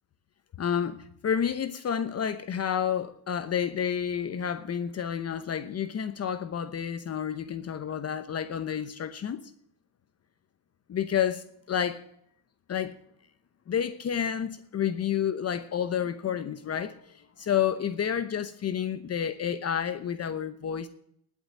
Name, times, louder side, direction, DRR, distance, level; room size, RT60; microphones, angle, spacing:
voice 1, 0.6-9.4 10.9-12.0 12.7-13.0 13.7-20.9, left 8 dB, 35° left, 0.9 m, -30 dB
11.0 x 8.5 x 9.3 m
cardioid pair, 140°, 45 cm